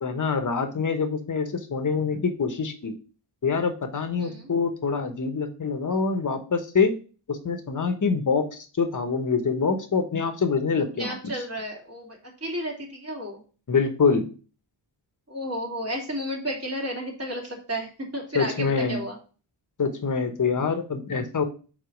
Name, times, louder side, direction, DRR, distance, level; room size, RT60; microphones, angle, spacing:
voice 1, 0.0-2.9 3.4-6.9 7.3-8.5 8.7-11.1 13.7-14.3 18.3-19.0 19.8-21.4, left 5 dB, 40° left, 6 dB, 1.2 m, -25 dB
voice 2, 4.2-4.5 10.9-13.4 15.3-19.2, equal, 30° right, -2 dB, 2.8 m, -32 dB
4.8 x 4.1 x 5.2 m, 0.36 s
wide cardioid pair, 85°, 45 cm